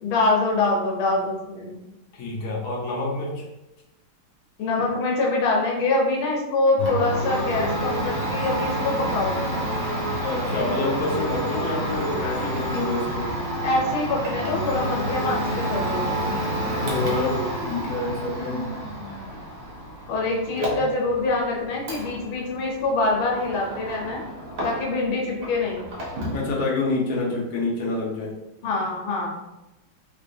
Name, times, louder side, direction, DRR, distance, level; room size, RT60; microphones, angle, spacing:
voice 1, 0.0-1.8 4.6-9.4 13.6-16.4 20.1-24.2 24.6-25.8 28.6-29.3, left 2 dB, 80° left, -2 dB, 1.5 m, -24 dB
voice 2, 2.1-3.4 10.2-13.3 16.8-18.6 20.6-20.7 26.3-28.3, left 2 dB, 60° left, -3 dB, 0.9 m, -27 dB
Domestic sounds home sounds, 6.8-25.1 25.4-26.4, right 1 dB, 65° right, 0.8 m, -29 dB
3.7 x 2.7 x 2.6 m, 0.98 s
omnidirectional pair, 2.3 m